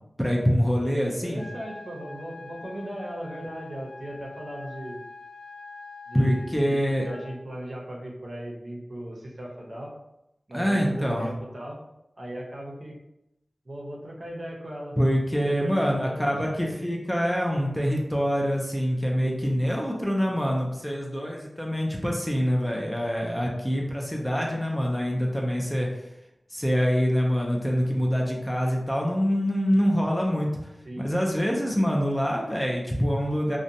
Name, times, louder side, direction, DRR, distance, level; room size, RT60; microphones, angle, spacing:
voice 1, 0.2-1.4 6.1-7.1 10.5-11.3 15.0-25.9 26.5-30.5 31.0-33.6, equal, 10° left, -1 dB, 0.4 m, -25 dB
voice 2, 1.1-5.0 6.1-9.9 10.5-11.8 12.2-13.0 13.6-15.0 15.4-16.8 30.8-31.1, right 1 dB, 50° right, -2 dB, 0.6 m, -37 dB
sound 1, 1.4-7.4, left 3 dB, 45° left, 0.9 m, -44 dB
2.6 x 2.1 x 2.6 m, 0.87 s
wide cardioid pair, 80°, 0 cm